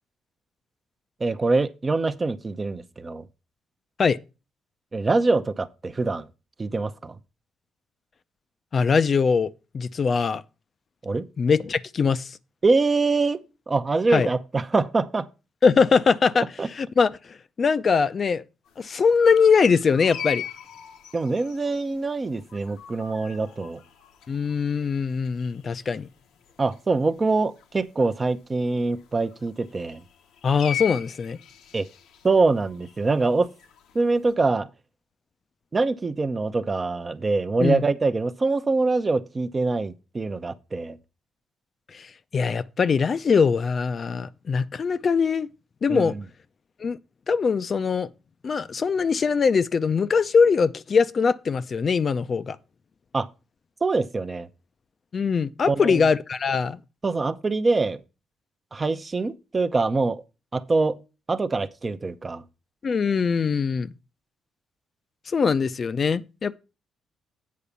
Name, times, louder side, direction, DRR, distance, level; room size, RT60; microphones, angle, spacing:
voice 1, 1.2-3.3 4.9-6.3 6.6-7.1 11.0-11.3 12.6-13.4 13.7-15.3 16.4-16.7 21.1-23.8 26.6-30.0 31.7-31.9 32.2-33.5 33.9-34.7 35.7-41.0 45.9-46.2 53.1-53.3 53.8-54.5 55.7-56.0 57.0-58.0 58.7-60.2 60.5-61.0 61.3-62.4, right 3 dB, 30° right, 0.7 m, -24 dB
voice 2, 8.7-10.4 11.4-12.4 14.1-14.3 15.6-18.4 18.8-20.4 24.3-26.1 30.4-31.4 37.6-37.8 41.9-45.5 45.8-46.1 46.8-47.0 47.3-48.1 48.4-52.6 55.1-56.8 62.8-63.9 65.3-66.6, left 5 dB, 45° left, 0.5 m, -22 dB
sound 1, 18.6-34.3, left 9 dB, 85° left, 1.0 m, -41 dB
8.5 x 5.0 x 6.7 m
cardioid pair, 90°, 0 cm